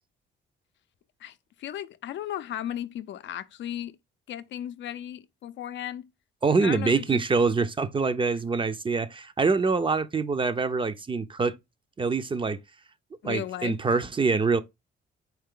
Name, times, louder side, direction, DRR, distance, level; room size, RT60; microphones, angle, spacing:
voice 1, 1.2-4.0 4.3-6.1 6.6-7.2 13.2-13.8, left 11 dB, 65° left, 0.5 m, -35 dB
voice 2, 6.4-11.6 12.0-12.6 13.2-14.6, right 4 dB, 25° right, 0.5 m, -25 dB
4.5 x 3.2 x 3.6 m
cardioid pair, 90°, 20 cm